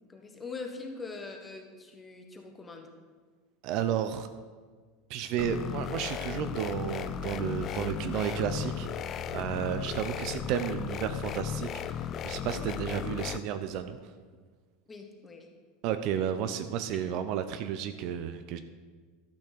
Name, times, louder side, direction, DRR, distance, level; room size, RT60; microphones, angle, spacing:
voice 1, 0.0-2.9 14.9-15.5, left 4 dB, 15° left, 3 dB, 1.2 m, -43 dB
voice 2, 3.6-4.3 5.1-8.9 9.3-14.0 15.8-18.6, right 9 dB, 45° right, 10 dB, 0.6 m, -32 dB
sound 1, 5.4-13.4, left 9 dB, 30° left, 0.4 m, -35 dB
sound 2, 6.5-11.9, right 6 dB, 90° right, 0.9 m, -51 dB
12.5 x 6.2 x 6.7 m, 1.5 s
supercardioid pair, 155°, 0 cm